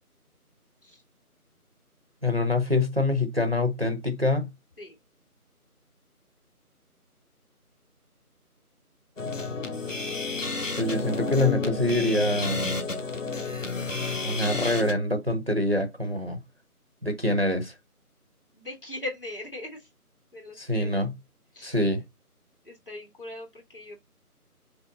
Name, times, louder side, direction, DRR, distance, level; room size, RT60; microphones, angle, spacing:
voice 1, 2.2-4.5 10.8-12.6 14.2-16.4 17.0-17.7 20.6-21.1 21.6-22.0, left 2 dB, 40° right, 0.9 m, -25 dB
sound 1, 9.2-14.9, left 3 dB, 55° left, 1.0 m, -31 dB
voice 2, 18.5-19.9 20.3-21.0 21.5-21.8 22.6-24.0, left 2 dB, 35° left, 2.0 m, -40 dB
5.3 x 2.1 x 3.9 m
figure-of-eight pair, 180°, 46 cm